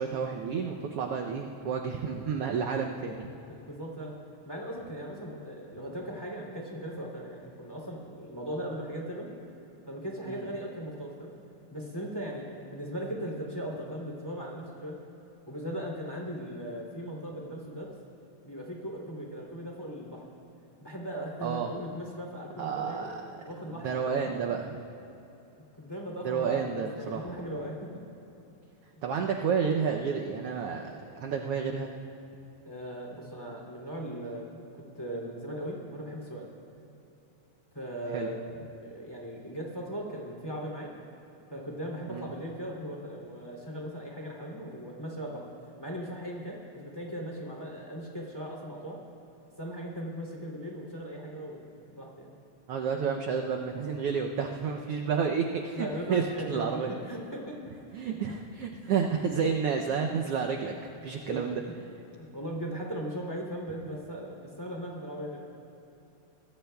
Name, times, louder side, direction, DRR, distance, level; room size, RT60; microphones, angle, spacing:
voice 1, 0.0-3.3 10.3-10.4 21.4-21.7 22.6-23.4 23.8-24.8 26.2-27.3 29.0-31.9 38.1-38.3 42.1-42.3 52.7-56.9 57.9-61.6, right 6 dB, 80° right, 2 dB, 1.3 m, -30 dB
voice 2, 3.5-4.2 4.4-9.3 9.9-11.3 11.7-15.0 15.5-17.9 18.4-20.2 20.8-23.1 23.4-24.2 25.8-26.6 26.9-27.9 32.6-34.6 34.9-36.5 37.7-38.4 38.8-40.9 41.5-45.4 45.8-49.0 49.6-52.3 55.7-57.6 57.9-58.3 61.0-61.7 62.1-65.4, equal, 10° left, -1 dB, 2.5 m, -38 dB
25.0 x 20.0 x 2.3 m, 2.9 s
omnidirectional pair, 3.4 m